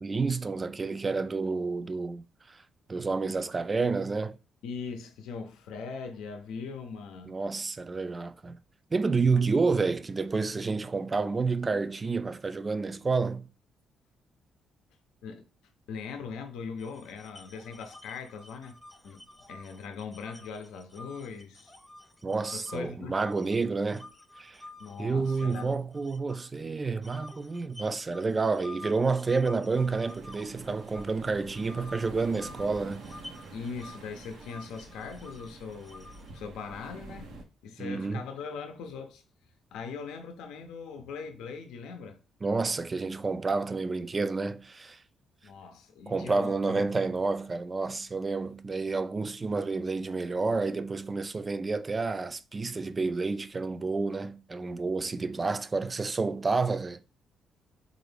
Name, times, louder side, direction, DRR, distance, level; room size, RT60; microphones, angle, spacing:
voice 1, 0.0-2.6 2.9-4.4 7.3-8.6 8.9-13.5 22.2-24.1 24.4-24.6 25.0-33.1 37.8-38.3 42.4-45.0 46.1-57.0, right 4 dB, 30° right, 0.3 m, -29 dB
voice 2, 4.6-7.4 9.3-9.4 15.2-15.4 15.9-18.7 19.0-21.7 22.5-23.1 24.8-25.8 33.5-37.4 37.6-39.2 39.7-42.2 45.4-46.9, left 5 dB, 90° left, 0.6 m, -40 dB
sound 1, 16.8-22.8 23.2-26.6 27.0-36.4, left 1 dB, 10° left, 0.6 m, -50 dB
sound 2, 29.7-37.4, right 3 dB, 85° right, 0.7 m, -47 dB
3.9 x 2.5 x 3.3 m
cardioid pair, 90°, 0 cm